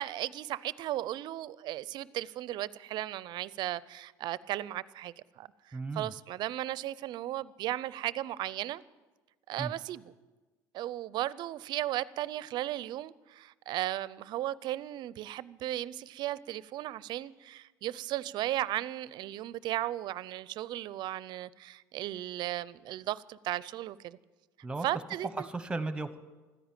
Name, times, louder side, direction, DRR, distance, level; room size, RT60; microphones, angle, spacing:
voice 1, 0.0-8.8 9.5-10.1 10.7-24.2 24.8-25.5, right 14 dB, 60° right, 0.5 m, -36 dB
voice 2, 5.7-6.1 9.6-9.7 24.6-24.9 25.4-26.2, right 3 dB, 10° right, 1.1 m, -35 dB
14.0 x 10.0 x 9.0 m
supercardioid pair, 100°, 8 cm